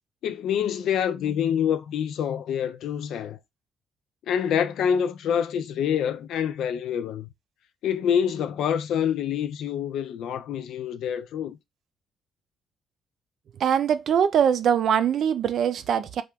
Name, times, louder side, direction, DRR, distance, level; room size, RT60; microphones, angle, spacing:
voice 1, 0.2-3.4 4.3-7.3 7.8-11.6, left 8 dB, 80° left, 0.4 m, -26 dB
voice 2, 13.6-16.2, right 8 dB, 65° right, 0.4 m, -22 dB
2.9 x 2.4 x 3.3 m
cardioid pair, 90°, 0 cm